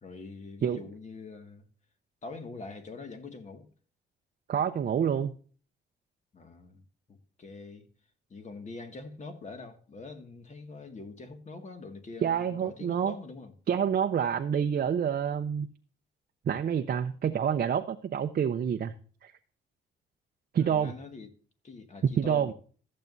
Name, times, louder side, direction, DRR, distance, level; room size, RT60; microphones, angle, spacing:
voice 1, 0.0-1.6 2.2-3.7 6.3-6.8 7.1-7.9 8.3-13.5 20.6-21.3 21.6-22.5, left 3 dB, 35° left, 2.0 m, -44 dB
voice 2, 4.5-5.3 12.2-13.1 13.7-15.7 16.5-18.9 19.2-19.3 20.5-20.9 22.0-22.5, right 8 dB, 50° right, 0.8 m, -27 dB
14.0 x 7.5 x 2.7 m
cardioid pair, 90°, 20 cm